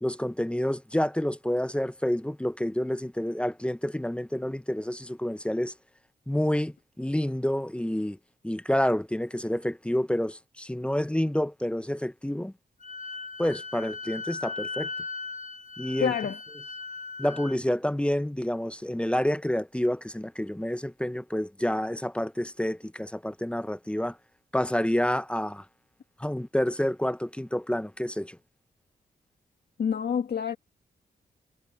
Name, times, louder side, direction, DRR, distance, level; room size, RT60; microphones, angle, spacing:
voice 1, 0.0-5.7 6.3-8.2 8.4-12.5 13.4-14.9 15.8-16.1 17.2-24.2 24.5-25.6 26.2-28.4, left 1 dB, 5° left, 0.7 m, -28 dB
Wind instrument woodwind instrument, 12.8-17.6, left 4 dB, 50° left, 4.9 m, -38 dB
voice 2, 16.0-16.4 29.8-30.6, left 7 dB, 65° left, 1.9 m, -27 dB
cardioid pair, 60°, 18 cm